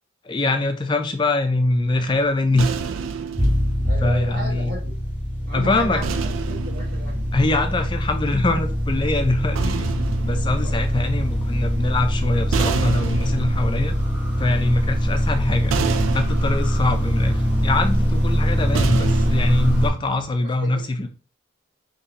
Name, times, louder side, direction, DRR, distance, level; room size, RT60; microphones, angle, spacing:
voice 1, 0.2-2.7 3.4-3.5 4.0-4.7 5.5-6.0 7.3-13.9 14.4-15.8 16.1-21.1, left 2 dB, 25° left, 0.4 m, -23 dB
sound 1, 1.8-5.1 6.0-8.3 9.2-20.3, right 5 dB, 90° right, 0.4 m, -31 dB
sound 2, 3.4-19.9, equal, 5° right, 0.9 m, -23 dB
voice 2, 3.8-5.0 5.5-6.2 6.5-7.2 10.6-10.8 20.4-21.1, right 1 dB, 55° right, 1.5 m, -34 dB
3.9 x 3.0 x 2.8 m
head